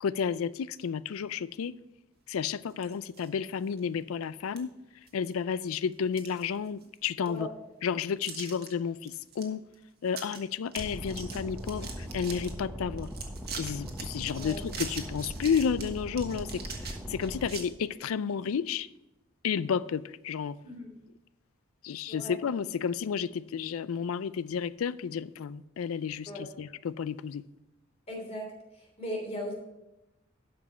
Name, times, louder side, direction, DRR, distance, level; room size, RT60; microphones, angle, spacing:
voice 1, 0.0-1.7 2.3-4.7 5.1-7.5 7.8-9.6 10.0-13.1 13.6-18.9 19.4-20.6 21.8-27.4, left 7 dB, 85° left, 0.4 m, -32 dB
sound 1, 2.7-3.3 3.8-3.9 4.6-4.7 5.1-5.5 5.9-7.0 7.3-7.4 8.3-8.7 9.0-9.4 9.7-9.8 10.1-10.4 10.7-12.5 13.0-17.6, right 6 dB, 50° right, 1.4 m, -42 dB
sound 2, 10.8-17.5, equal, 5° right, 0.9 m, -40 dB
voice 2, 28.1-29.5, equal, 30° left, 3.1 m, -38 dB
12.0 x 5.1 x 5.6 m
head